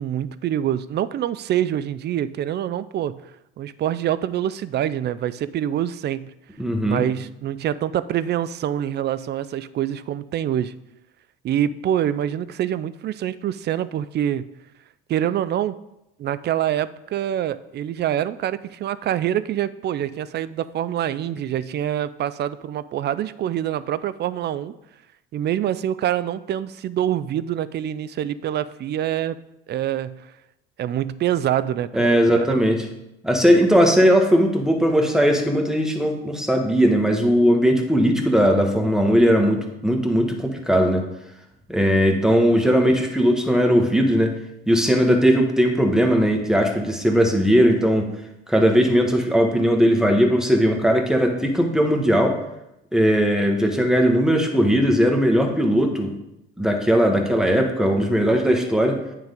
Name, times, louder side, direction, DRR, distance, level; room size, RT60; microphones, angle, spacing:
voice 1, 0.0-3.2 3.6-6.3 6.8-10.7 11.4-14.4 15.1-15.7 16.2-24.7 25.3-29.4 29.7-30.3 30.8-32.6, right 11 dB, 35° right, 15 dB, 0.4 m, -25 dB
voice 2, 6.6-7.0 31.9-32.8 33.2-41.0 41.7-44.4 44.7-48.1 48.5-52.4 52.9-56.1 56.6-59.0, equal, ahead, 3 dB, 1.3 m, -18 dB
9.3 x 3.9 x 5.1 m, 0.87 s
hypercardioid pair, 65°, 30 cm